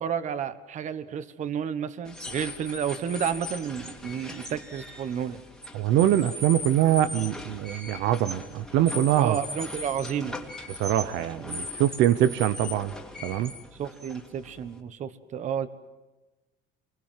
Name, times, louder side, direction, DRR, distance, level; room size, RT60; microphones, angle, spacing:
voice 1, 0.0-5.4 9.2-10.4 13.7-15.7, right 8 dB, 40° right, 13 dB, 1.2 m, -31 dB
sound 1, 2.0-14.8, left 2 dB, 5° left, 2.5 m, -39 dB
voice 2, 5.7-9.4 10.7-12.9 13.2-13.5, right 12 dB, 70° right, 13 dB, 0.9 m, -23 dB
27.5 x 22.0 x 7.6 m, 1.1 s
cardioid pair, 165°, 19 cm